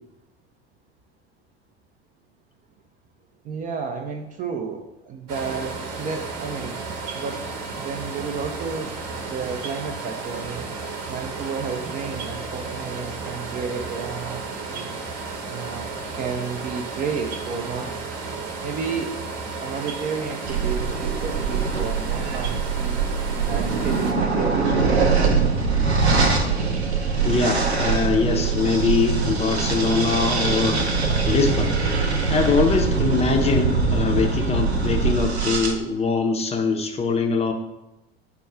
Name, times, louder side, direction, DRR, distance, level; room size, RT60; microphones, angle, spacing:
voice 1, 3.4-6.8 7.1-7.5 7.8-9.0 9.3-10.7 11.1-14.9 15.5-18.0 18.6-19.2 19.6-23.0 23.4-25.6, right 5 dB, 25° right, 4 dB, 0.4 m, -31 dB
sound 1, 5.3-24.1, right 4 dB, 50° right, 0.9 m, -33 dB
sound 2, 20.5-35.7, right 4 dB, 85° right, 0.6 m, -22 dB
voice 2, 27.2-31.8 32.3-37.5, left 4 dB, 20° left, 4 dB, 0.5 m, -23 dB
4.3 x 2.3 x 4.7 m, 0.96 s
figure-of-eight pair, 75°, 32 cm